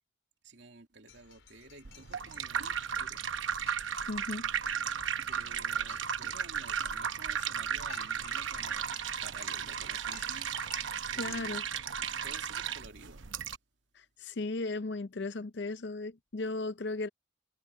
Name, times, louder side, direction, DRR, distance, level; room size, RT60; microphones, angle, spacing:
voice 1, 0.4-3.3 5.2-11.6 12.0-13.3, right 2 dB, 65° right, 2.7 m, -53 dB
sound 1, 1.1-11.0, left 7 dB, 90° left, 5.5 m, -56 dB
sound 2, 1.8-13.6, right 8 dB, 85° right, 0.9 m, -35 dB
voice 2, 4.1-4.5 11.2-11.6 13.9-17.1, left 2 dB, 65° left, 0.6 m, -36 dB
head